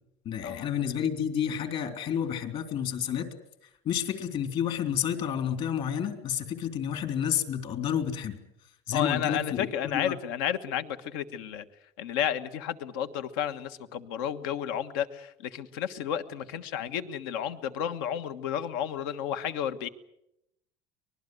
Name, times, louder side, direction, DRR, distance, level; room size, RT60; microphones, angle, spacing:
voice 1, 0.3-3.3 3.9-8.4 8.9-9.7 9.9-10.1, left 9 dB, 55° left, 7 dB, 3.7 m, -30 dB
voice 2, 8.9-11.6 12.0-19.9, left 9 dB, 85° left, 9 dB, 1.4 m, -32 dB
24.5 x 20.5 x 8.0 m, 0.83 s
supercardioid pair, 115°, 12 cm